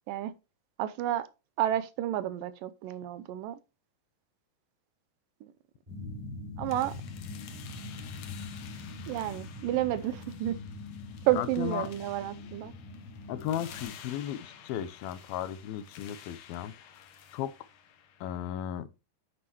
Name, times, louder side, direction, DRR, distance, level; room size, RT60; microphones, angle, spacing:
voice 1, 0.8-1.3 1.6-3.6 5.4-5.5 6.6-6.9 9.1-10.6 11.3-12.7, right 13 dB, 75° right, 2.3 m, -30 dB
sound 1, 5.9-13.8, left 3 dB, 10° right, 6.0 m, -43 dB
sound 2, 6.7-18.6, left 9 dB, 65° left, 2.4 m, -52 dB
voice 2, 11.3-11.9 13.3-17.5 18.2-18.9, left 10 dB, 85° left, 2.7 m, -35 dB
9.8 x 7.7 x 3.0 m
omnidirectional pair, 4.2 m